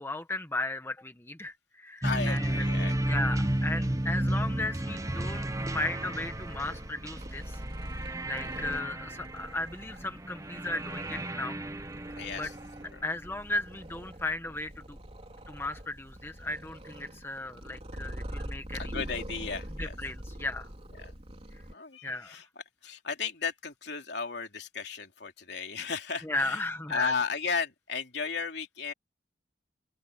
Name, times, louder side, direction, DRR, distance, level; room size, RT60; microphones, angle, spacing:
voice 1, 0.0-2.6 3.0-5.5 5.7-7.6 8.3-11.6 12.4-12.5 13.0-15.0 15.5-19.0 19.8-20.7 22.0-22.4 26.2-27.1, left 2 dB, 15° left, 1.1 m, -35 dB
voice 2, 2.0-3.2 12.1-12.5 12.9-13.0 18.8-20.0 21.0-21.1 21.7-22.4 22.8-26.6 26.9-28.9, left 5 dB, 65° left, 3.2 m, -34 dB
sound 1, 2.0-12.9, right 1 dB, 15° right, 0.9 m, -33 dB
Purr, 2.4-21.7, equal, 35° right, 3.9 m, -44 dB
open air
head